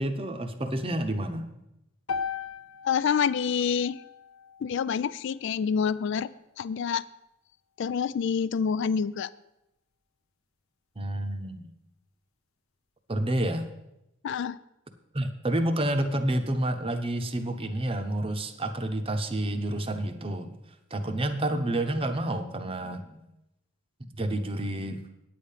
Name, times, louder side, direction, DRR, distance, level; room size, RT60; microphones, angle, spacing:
voice 1, 0.0-1.6 11.0-11.7 13.1-13.7 15.1-20.6 20.9-23.2 24.2-25.0, right 1 dB, 25° right, 7 dB, 0.8 m, -29 dB
sound 1, 2.1-6.3, left 6 dB, 85° left, 0.8 m, -39 dB
voice 2, 2.8-4.0 4.6-6.3 6.6-7.0 7.8-9.3 14.2-14.6, left 6 dB, 60° left, 16 dB, 0.3 m, -27 dB
9.3 x 8.4 x 5.6 m, 0.87 s
head